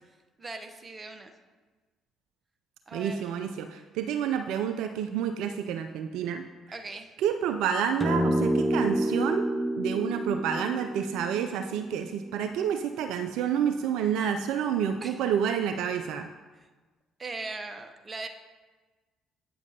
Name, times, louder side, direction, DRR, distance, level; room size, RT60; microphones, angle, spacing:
voice 1, 0.4-1.3 2.9-3.3 6.7-7.1 15.0-15.2 17.2-18.3, right 3 dB, 30° right, 6 dB, 0.8 m, -39 dB
voice 2, 2.9-6.4 7.2-9.4 9.8-16.3, right 8 dB, 70° right, 7 dB, 0.3 m, -29 dB
sound 1, 8.0-12.5, right 1 dB, ahead, 0.8 m, -29 dB
9.1 x 7.1 x 2.8 m, 1.3 s
hypercardioid pair, 50°, 0 cm